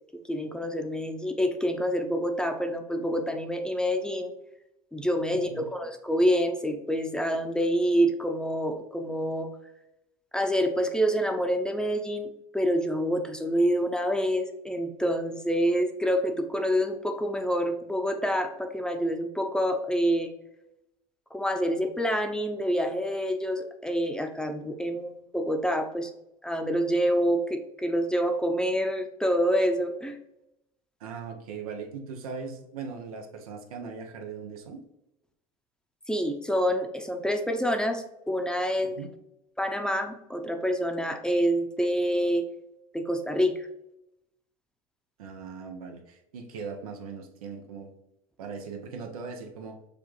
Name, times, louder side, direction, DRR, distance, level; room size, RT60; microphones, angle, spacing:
voice 1, 0.3-4.3 4.9-9.5 10.3-20.3 21.3-26.1 26.4-30.2 36.1-38.9 39.6-42.5 42.9-43.7, equal, 5° left, 4 dB, 0.6 m, -27 dB
voice 2, 5.3-5.7 31.0-34.8 39.0-39.1 45.2-47.9 48.4-49.8, right 5 dB, 85° right, 4 dB, 0.7 m, -39 dB
6.7 x 2.4 x 3.1 m, 0.87 s
hypercardioid pair, 80°, 18 cm